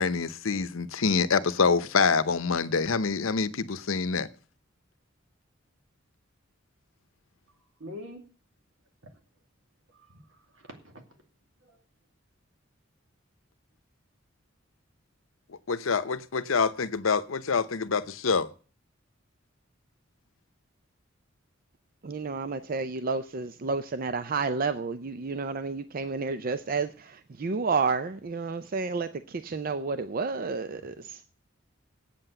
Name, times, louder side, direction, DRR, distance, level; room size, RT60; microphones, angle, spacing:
voice 1, 0.0-4.3 15.7-18.5, left 5 dB, 85° left, 0.8 m, -26 dB
voice 2, 7.8-8.2 9.0-9.1 10.1-10.2 10.5-10.9 11.6-11.8, left 1 dB, 75° right, 2.5 m, -43 dB
voice 3, 22.0-31.2, right 4 dB, 45° right, 0.5 m, -31 dB
8.6 x 7.8 x 7.9 m
head